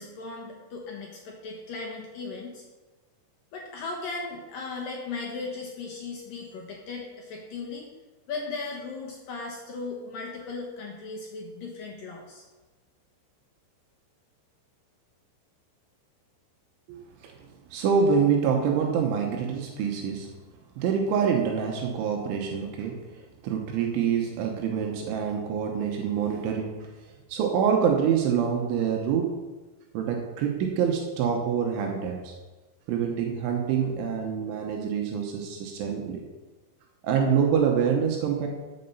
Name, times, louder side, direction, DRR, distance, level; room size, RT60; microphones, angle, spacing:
voice 1, 0.0-2.6 3.5-7.9 8.3-12.4, left 3 dB, 70° left, 0 dB, 2.2 m, -37 dB
voice 2, 16.9-17.4 17.7-20.3 20.8-23.0 23.4-26.9 27.3-29.4 30.0-32.3 32.9-36.2 37.0-38.5, right 7 dB, 80° right, 2 dB, 3.4 m, -26 dB
13.5 x 7.8 x 5.5 m, 1.2 s
omnidirectional pair, 5.6 m